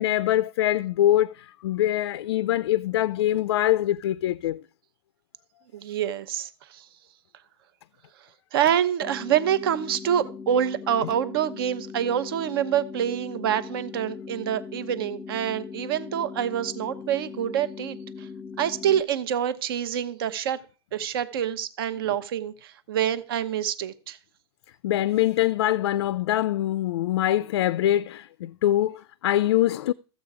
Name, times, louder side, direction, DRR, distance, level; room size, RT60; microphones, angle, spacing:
voice 1, 0.0-4.6 24.8-29.9, left 13 dB, 80° left, 0.4 m, -24 dB
voice 2, 5.7-6.9 8.5-18.3 18.6-20.6 20.9-24.2, right 10 dB, 60° right, 0.9 m, -26 dB
sound 1, 9.0-19.0, left 5 dB, 20° left, 0.5 m, -40 dB
14.0 x 7.6 x 4.8 m
supercardioid pair, 175°, 14 cm